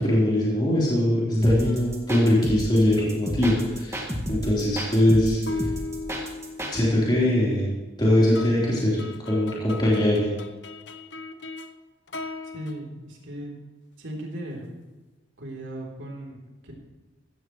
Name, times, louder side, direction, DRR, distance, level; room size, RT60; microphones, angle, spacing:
voice 1, 0.0-5.4 6.7-7.7 8.0-10.4, left 1 dB, 25° left, -7 dB, 3.8 m, -22 dB
sound 1, 1.4-6.8, equal, 15° right, 1.8 m, -32 dB
sound 2, 1.6-2.3 5.5-7.4 8.3-11.7 12.1-12.8, left 3 dB, 65° left, 0.9 m, -37 dB
voice 2, 12.5-13.5 14.0-14.7 15.4-16.7, right 1 dB, 85° right, -1 dB, 3.4 m, -37 dB
15.5 x 15.0 x 3.2 m, 1.2 s
head